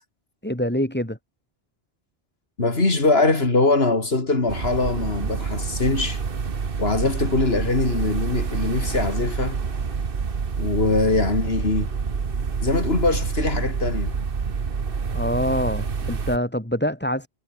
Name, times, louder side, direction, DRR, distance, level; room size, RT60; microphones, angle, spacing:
voice 1, 0.4-1.2 15.1-17.3, equal, 10° left, 3.6 m, -25 dB
voice 2, 2.6-6.2 6.8-9.6 10.6-11.9 12.6-14.1, left 3 dB, 75° left, 3.7 m, -22 dB
sound 1, 4.5-16.4, right 5 dB, 60° right, 1.5 m, -27 dB
omnidirectional pair, 1.0 m